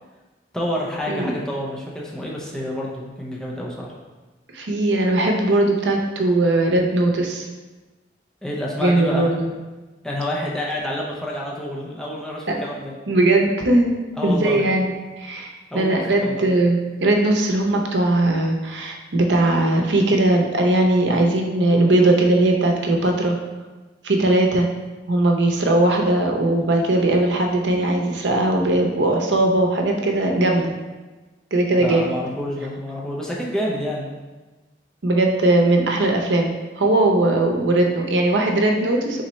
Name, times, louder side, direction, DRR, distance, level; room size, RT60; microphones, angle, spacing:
voice 1, 0.5-3.9 8.4-9.2 10.0-12.9 14.2-14.6 15.7-16.5 31.8-34.1, left 1 dB, 5° left, -4 dB, 0.6 m, -28 dB
voice 2, 1.1-1.4 4.5-7.5 8.8-9.5 12.5-12.6 13.1-13.9 14.2-23.4 24.0-24.7 25.1-30.7 31.5-32.1 35.0-39.2, right 2 dB, 85° right, 2 dB, 0.7 m, -19 dB
4.3 x 3.8 x 3.0 m, 1.2 s
head